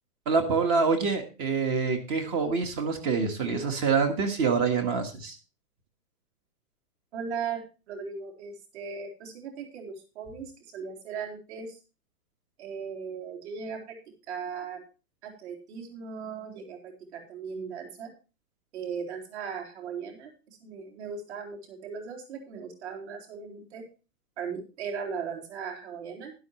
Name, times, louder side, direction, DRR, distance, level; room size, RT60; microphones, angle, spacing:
voice 1, 0.2-5.4, right 5 dB, 25° right, 6 dB, 1.6 m, -26 dB
voice 2, 7.1-11.8 12.6-14.0 14.3-14.8 15.2-18.1 18.7-23.8 24.4-26.3, right 6 dB, 45° right, 2 dB, 3.8 m, -38 dB
12.0 x 11.5 x 3.1 m, 0.32 s
hypercardioid pair, 160°, 47 cm